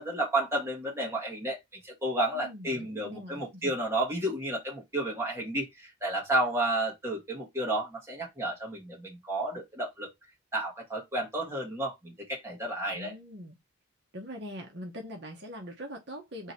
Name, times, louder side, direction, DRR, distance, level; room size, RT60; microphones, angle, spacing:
voice 1, 0.0-1.6 1.8-10.1 10.5-13.1, right 1 dB, 10° right, 1.5 m, -31 dB
voice 2, 2.3-3.8 12.9-13.6 14.1-16.5, equal, 55° right, 1.0 m, -42 dB
3.8 x 2.8 x 4.2 m
head